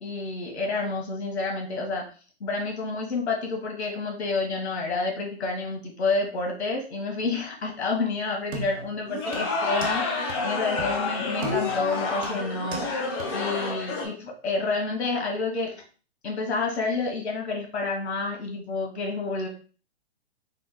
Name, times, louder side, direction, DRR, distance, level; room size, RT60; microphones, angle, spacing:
voice 1, 0.0-2.0 2.4-15.8 16.2-19.5, left 3 dB, 75° left, 1 dB, 1.4 m, -29 dB
sound 1, 8.5-9.0 9.3-10.0 10.3-10.4 10.8-11.0 11.4-11.9 12.2-12.9 13.2-13.3, right 4 dB, 70° right, 1.0 m, -36 dB
sound 2, 9.1-14.1, left 4 dB, 20° left, 0.7 m, -29 dB
3.9 x 3.6 x 2.2 m, 0.38 s
hypercardioid pair, 155°, 33 cm